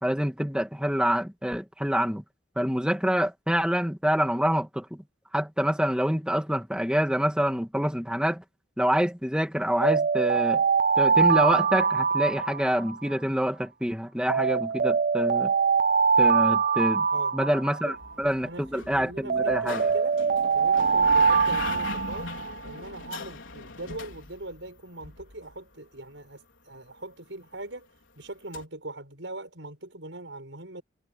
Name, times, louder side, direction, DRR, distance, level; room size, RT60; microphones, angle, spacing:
voice 1, 0.0-2.2 2.6-5.0 5.3-8.4 8.8-10.6 11.0-15.5 16.2-17.1 17.3-19.8, equal, 5° right, 2.4 m, -26 dB
Alarm, 9.8-13.1 14.3-18.1 19.3-22.6, right 5 dB, 45° right, 0.4 m, -23 dB
sound 1, 17.9-25.6 28.5-28.6, left 3 dB, 80° left, 4.5 m, -40 dB
voice 2, 18.4-20.2 20.5-22.3 22.6-27.9 28.2-30.8, right 2 dB, 70° right, 6.9 m, -41 dB
head